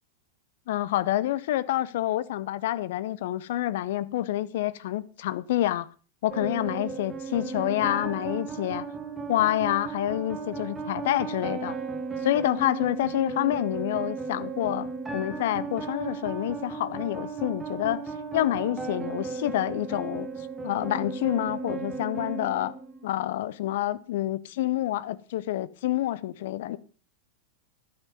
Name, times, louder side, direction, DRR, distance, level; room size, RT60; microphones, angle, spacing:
voice 1, 0.7-5.9 6.2-8.9 9.3-11.7 12.2-18.0 18.3-20.3 20.6-22.7 23.0-26.8, left 14 dB, 55° left, 0.6 m, -28 dB
sound 1, 6.3-23.3, right 4 dB, 15° right, 1.5 m, -35 dB
11.5 x 8.2 x 5.2 m
figure-of-eight pair, 90°, 0 cm